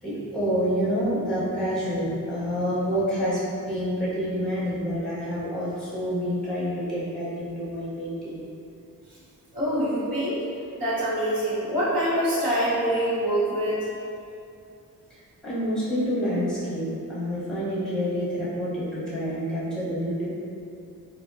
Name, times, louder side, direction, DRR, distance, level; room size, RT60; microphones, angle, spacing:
voice 1, 0.0-8.4 15.1-20.3, equal, ahead, -10 dB, 0.7 m, -28 dB
voice 2, 9.5-10.4 10.8-13.9, equal, 75° right, -10 dB, 1.1 m, -25 dB
3.3 x 2.2 x 2.5 m, 2.6 s
wide cardioid pair, 170°, 35 cm